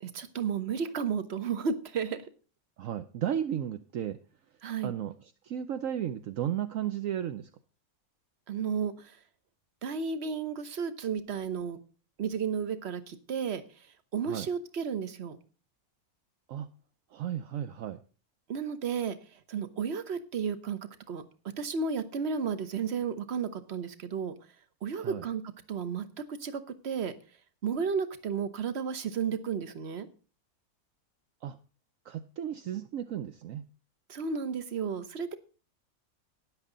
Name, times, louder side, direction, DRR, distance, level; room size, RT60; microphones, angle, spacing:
voice 1, 0.0-2.3 4.6-4.9 8.5-9.1 9.8-11.8 12.2-13.6 14.1-15.4 18.5-19.2 19.5-20.8 21.1-21.2 21.6-24.3 24.8-25.4 25.7-27.1 27.6-30.1 34.1-35.3, right 6 dB, 50° right, 11 dB, 1.2 m, -33 dB
voice 2, 2.8-4.2 4.8-7.5 14.2-14.5 16.5-16.7 17.1-18.0 25.0-25.2 31.4-31.6 32.0-33.7, right 10 dB, 70° right, 10 dB, 1.0 m, -34 dB
13.0 x 10.0 x 3.9 m, 0.36 s
omnidirectional pair, 1.5 m